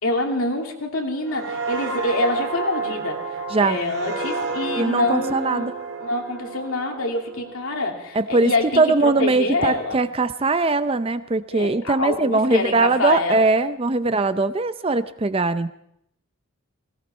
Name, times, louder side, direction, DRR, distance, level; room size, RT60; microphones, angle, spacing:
voice 1, 0.0-5.6 6.0-10.0 11.5-13.5, left 2 dB, 80° left, 1 dB, 2.8 m, -26 dB
sound 1, 1.3-8.7 9.1-9.4, right 3 dB, 85° right, 2.5 m, -31 dB
voice 2, 4.8-5.7 8.1-8.5 8.8-15.7, right 3 dB, 25° right, 12 dB, 0.5 m, -21 dB
18.5 x 18.0 x 4.4 m, 0.75 s
head